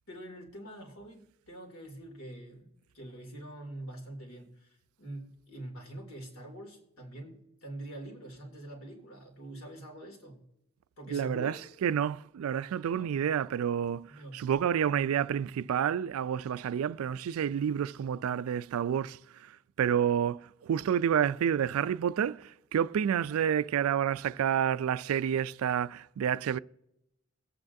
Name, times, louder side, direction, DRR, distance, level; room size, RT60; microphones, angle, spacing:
voice 1, 0.1-10.4 11.0-11.6 12.9-13.2 14.1-14.5, right 1 dB, 80° left, 2.4 m, -45 dB
voice 2, 11.1-11.5 11.8-19.2 19.8-26.6, right 8 dB, 90° right, 0.3 m, -29 dB
21.5 x 8.5 x 2.6 m
head